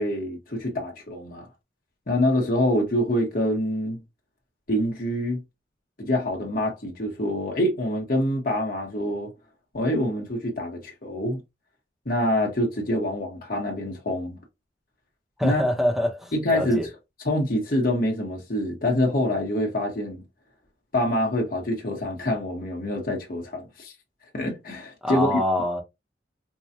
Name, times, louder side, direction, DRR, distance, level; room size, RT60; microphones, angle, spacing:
voice 1, 0.0-1.5 2.1-4.0 4.7-5.4 6.0-9.3 9.7-11.4 12.0-14.4 15.4-15.6 16.3-16.8 17.2-20.2 20.9-23.9 24.3-25.3, left 1 dB, 50° left, 1.2 m, -25 dB
voice 2, 15.4-16.9 25.0-25.8, left 1 dB, ahead, 0.8 m, -25 dB
4.7 x 2.3 x 2.7 m
head